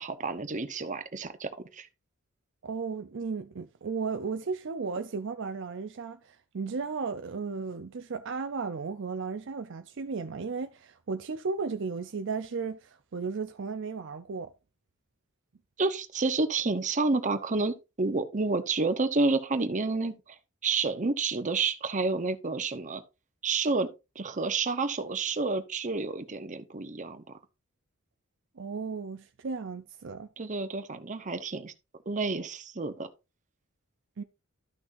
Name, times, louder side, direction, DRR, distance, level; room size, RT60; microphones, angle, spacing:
voice 1, 0.0-1.9 15.8-20.1 20.6-23.0 23.4-23.9 24.2-27.2 30.4-31.7 32.1-33.1, right 3 dB, 35° right, 0.9 m, -29 dB
voice 2, 2.6-14.5 28.6-30.3 34.2-34.3, right 4 dB, 60° right, 0.5 m, -35 dB
13.0 x 6.1 x 2.6 m
head